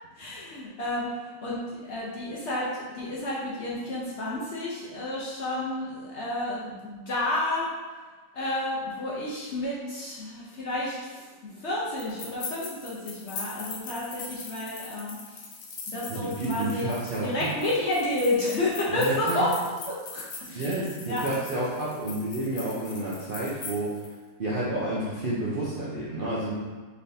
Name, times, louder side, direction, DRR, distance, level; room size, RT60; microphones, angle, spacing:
voice 1, 0.2-7.7 8.3-15.5 15.9-21.2, left 1 dB, 55° left, -6 dB, 0.8 m, -31 dB
sound 1, 12.0-24.1, left 4 dB, 75° left, 1.2 m, -41 dB
voice 2, 16.1-17.3 18.9-19.5 20.4-24.1 24.4-26.5, right 1 dB, 60° right, -8 dB, 0.6 m, -30 dB
4.1 x 3.5 x 2.7 m, 1.3 s
omnidirectional pair, 1.7 m